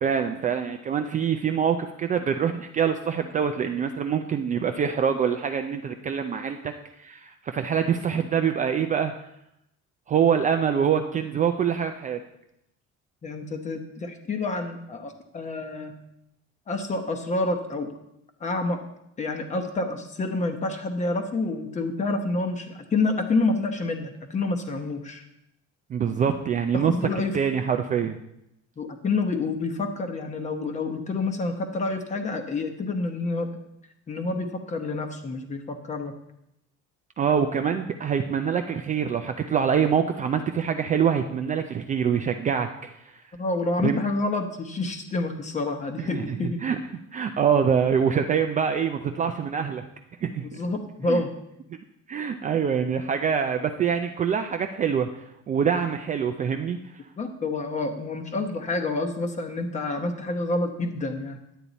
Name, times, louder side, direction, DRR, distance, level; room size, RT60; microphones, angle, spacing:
voice 1, 0.0-6.7 7.0-9.1 10.1-12.2 25.9-26.9 27.3-28.2 37.2-43.2 43.8-44.0 46.0-46.4 46.6-46.8 47.1-49.8 50.2-50.5 51.1-51.2 52.1-55.1 55.5-56.8, right 7 dB, 25° right, 6 dB, 0.4 m, -25 dB
voice 2, 13.2-16.0 16.7-17.9 18.4-18.8 19.2-25.2 26.7-27.4 28.8-33.6 34.1-36.2 43.3-46.6 50.6-51.3 57.2-61.4, left 3 dB, 25° left, 6 dB, 1.0 m, -28 dB
10.0 x 8.5 x 4.0 m, 0.82 s
cardioid pair, 170°, 29 cm